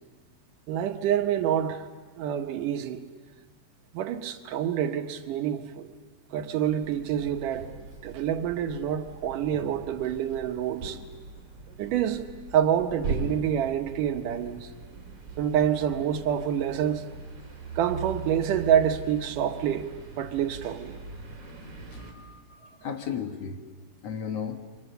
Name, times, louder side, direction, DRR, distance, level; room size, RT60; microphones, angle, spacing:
voice 1, 0.7-1.8 2.2-3.0 3.9-6.0 6.3-7.7 8.0-11.0 11.8-12.3 12.5-14.7 15.4-17.1 17.8-19.9 20.2-21.0, right 9 dB, 90° right, 7 dB, 2.8 m, -27 dB
sound 1, 6.6-22.1, right 4 dB, 50° right, 4.8 m, -40 dB
voice 2, 21.9-23.6 24.0-24.6, left 7 dB, 55° left, 5 dB, 2.3 m, -35 dB
29.5 x 25.0 x 6.8 m, 1.5 s
omnidirectional pair, 3.6 m